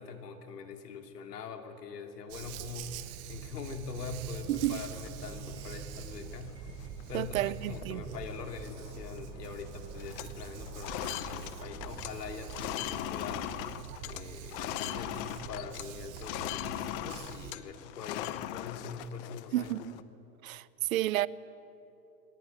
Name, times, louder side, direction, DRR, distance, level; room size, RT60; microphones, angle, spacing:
voice 1, 0.0-6.6 7.1-13.5 14.0-19.7, left 5 dB, 85° left, 2.8 m, -43 dB
Dog, 2.3-17.5, right 9 dB, 30° right, 1.3 m, -45 dB
sound 1, 4.2-13.2, equal, 10° right, 2.2 m, -51 dB
voice 2, 4.5-4.8 7.1-8.0 19.5-19.9 20.4-20.6 20.9-21.3, right 15 dB, 60° right, 0.8 m, -30 dB
sound 2, 4.9-6.0 6.5-6.6 6.8-7.2 7.6-7.8 8.1-9.2 9.4-9.7 9.9-15.9 16.2-20.0, left 13 dB, 35° left, 0.8 m, -39 dB
21.0 x 19.0 x 10.0 m
hypercardioid pair, 145°, 47 cm